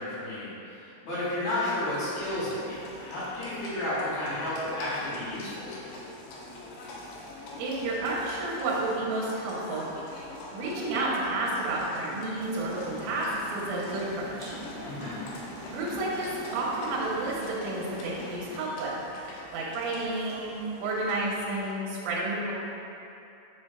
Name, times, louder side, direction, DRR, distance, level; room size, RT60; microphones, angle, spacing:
voice 1, 0.0-5.9 14.8-15.3, left 1 dB, 60° left, -10 dB, 2.9 m, -32 dB
Livestock farm animals working animals, 1.8-21.7, left 2 dB, 75° left, 2.9 m, -45 dB
voice 2, 7.6-9.8 10.5-14.6 15.7-19.0 19.5-22.5, right 2 dB, 80° right, -6 dB, 3.3 m, -31 dB
sound 1, 12.3-19.0, right 2 dB, 60° right, 2.4 m, -43 dB
7.7 x 6.5 x 2.3 m, 2.7 s
omnidirectional pair, 5.7 m